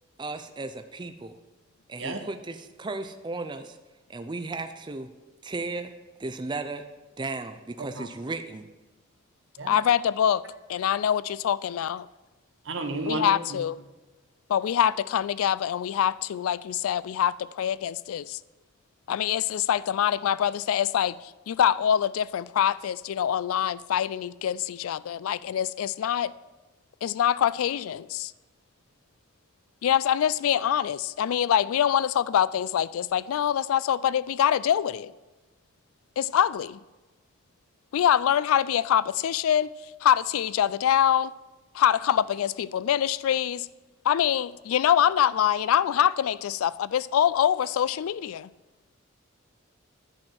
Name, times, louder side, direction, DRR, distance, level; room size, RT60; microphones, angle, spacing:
voice 1, 0.2-1.4 1.9-3.8 4.1-5.1 5.4-5.9 6.2-6.8 7.2-8.7, right 3 dB, 20° right, 0.4 m, -35 dB
voice 2, 9.7-10.4 10.7-12.1 13.0-13.8 14.5-18.4 19.1-26.3 27.0-28.3 29.8-35.1 36.2-36.8 37.9-39.7 40.0-41.3 41.7-43.7 44.0-48.5, left 9 dB, 85° left, 0.3 m, -24 dB
voice 3, 12.6-13.6, right 2 dB, 60° right, 1.1 m, -32 dB
10.5 x 4.4 x 7.7 m
head